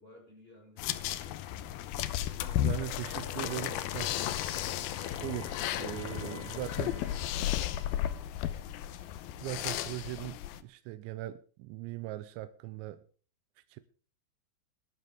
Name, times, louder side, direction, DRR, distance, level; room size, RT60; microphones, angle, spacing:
voice 1, 0.0-1.4 2.3-2.9 3.1-3.9 4.9-5.3 5.8-7.7, equal, 15° left, 1 dB, 4.7 m, -55 dB
sound 1, 0.8-10.6, left 12 dB, 75° left, 2.4 m, -34 dB
voice 2, 2.4-4.1 5.2-7.0 9.4-13.0 13.7-13.8, right 16 dB, 90° right, 12 dB, 3.1 m, -40 dB
Wind instrument woodwind instrument, 3.4-8.2, equal, 50° right, 4.5 m, -53 dB
21.5 x 12.0 x 3.6 m, 0.39 s
omnidirectional pair, 5.1 m